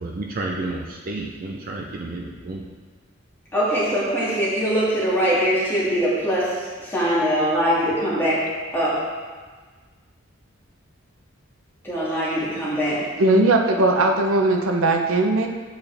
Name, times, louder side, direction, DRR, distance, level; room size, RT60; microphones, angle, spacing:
voice 1, 0.0-2.6, right 2 dB, 45° right, 0 dB, 0.5 m, -31 dB
voice 2, 3.5-6.5 6.8-8.4 8.7-9.0 11.8-13.0, equal, 10° left, -9 dB, 1.9 m, -22 dB
voice 3, 13.2-15.5, right 2 dB, 90° right, 3 dB, 0.6 m, -19 dB
8.0 x 4.3 x 3.3 m, 1.5 s
head